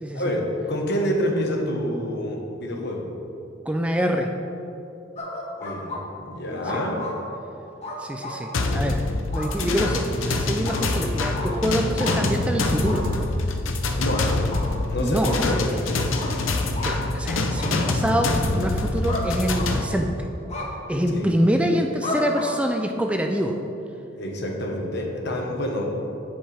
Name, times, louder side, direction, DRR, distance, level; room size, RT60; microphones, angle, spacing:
voice 1, 0.1-3.1 5.6-7.0 14.0-14.3 14.9-16.1 21.1-21.3 24.2-26.0, equal, 60° left, 1 dB, 1.3 m, -27 dB
voice 2, 3.7-4.3 6.7-6.8 8.0-9.0 9.3-13.1 15.0-15.8 16.8-20.1 20.9-23.6, equal, 5° right, 3 dB, 0.4 m, -25 dB
sound 1, 5.2-6.0 6.6-7.2 7.8-8.4 9.3-9.5 9.8-10.0 10.7-10.8 11.4-11.5 12.0-12.2 12.8-13.0 14.1-14.7 15.2-15.4 16.2-16.3 16.7-16.9 17.6-17.8 19.1-19.3 19.5-20.0 20.5-20.7 22.0-22.5, left 2 dB, 35° left, 1.4 m, -32 dB
sound 2, 8.5-19.8, left 2 dB, 85° left, 0.7 m, -25 dB
16.0 x 5.5 x 3.4 m, 2.9 s
head